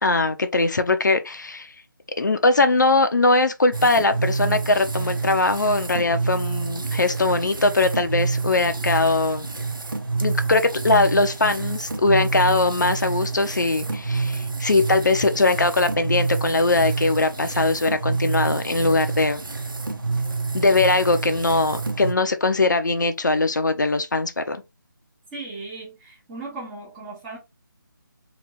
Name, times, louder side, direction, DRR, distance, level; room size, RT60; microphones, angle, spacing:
voice 1, 0.0-1.7 2.2-9.5 10.2-19.4 20.5-24.6, left 3 dB, 60° left, 0.7 m, -21 dB
sound 1, 3.7-22.1, right 4 dB, 75° right, 0.9 m, -28 dB
voice 2, 25.3-27.4, right 3 dB, 10° right, 0.8 m, -37 dB
3.2 x 3.0 x 4.4 m
figure-of-eight pair, 155°, 11 cm